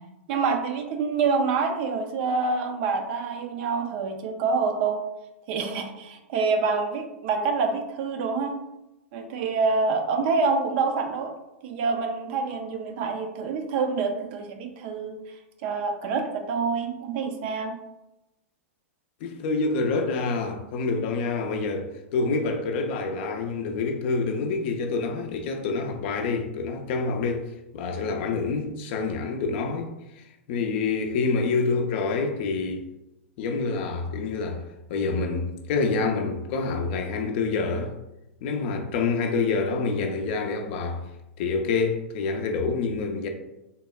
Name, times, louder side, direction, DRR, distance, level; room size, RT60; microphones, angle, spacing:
voice 1, 0.3-5.0 5.5-8.5 9.1-11.3 11.6-15.2 15.6-17.7, right 4 dB, 50° right, 0.4 m, -26 dB
voice 2, 19.2-27.5 27.7-29.9 30.2-32.9 33.4-34.6 34.9-37.9 38.4-41.1 41.4-43.3, left 4 dB, 50° left, 0.4 m, -27 dB
3.5 x 2.0 x 2.2 m
hypercardioid pair, 115°, 7 cm